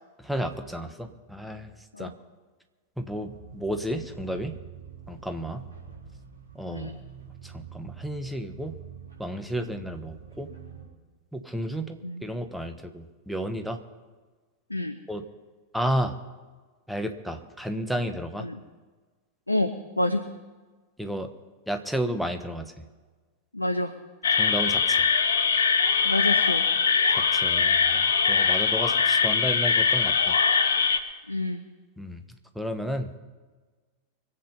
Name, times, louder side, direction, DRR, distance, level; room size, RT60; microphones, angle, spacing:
voice 1, 0.2-1.7 2.0-2.1 3.0-4.6 5.1-5.7 6.5-6.9 7.4-8.7 9.2-10.5 11.3-13.8 15.1-15.2 15.7-16.2 16.9-18.5 21.0-21.3 21.7-22.9 24.3-25.1 27.1-30.4 32.0-32.2 32.5-33.1, equal, ahead, 6 dB, 1.3 m, -32 dB
sound 1, 3.1-10.9, right 6 dB, 70° right, 3.9 m, -46 dB
voice 2, 6.7-7.0 12.0-12.2 14.7-15.0 18.4-18.6 19.5-20.2 23.5-23.9 26.0-26.6 31.3-31.6, left 1 dB, 85° left, 7 dB, 0.7 m, -28 dB
sound 2, 24.2-31.0, left 5 dB, 65° left, 1.0 m, -22 dB
24.5 x 8.1 x 5.5 m, 1.4 s
figure-of-eight pair, 90°, 0 cm